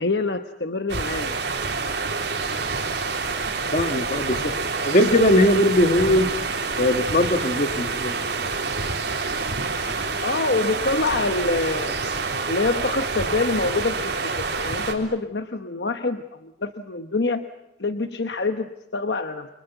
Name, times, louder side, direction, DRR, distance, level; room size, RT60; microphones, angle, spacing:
voice 1, 0.0-1.3 10.2-12.0 12.5-17.4 17.8-18.7 18.9-19.5, left 3 dB, 70° left, 8 dB, 1.1 m, -26 dB
sound 1, 0.9-14.9, right 4 dB, 65° right, 3.8 m, -27 dB
voice 2, 3.7-4.5 4.8-6.3 6.8-8.5, left 1 dB, 45° left, 8 dB, 1.6 m, -20 dB
30.0 x 24.5 x 8.1 m, 0.98 s
head